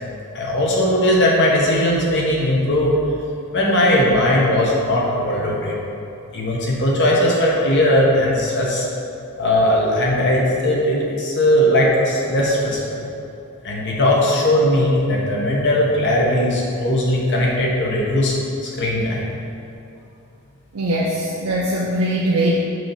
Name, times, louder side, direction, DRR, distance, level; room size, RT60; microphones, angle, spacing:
voice 1, 0.3-2.9 3.5-5.8 6.3-8.9 9.4-13.1 13.6-18.3 18.8-19.3, left 1 dB, 55° left, -3 dB, 1.1 m, -18 dB
voice 2, 20.7-22.5, right 1 dB, 75° right, -4 dB, 0.6 m, -21 dB
6.2 x 2.9 x 5.6 m, 2.7 s
head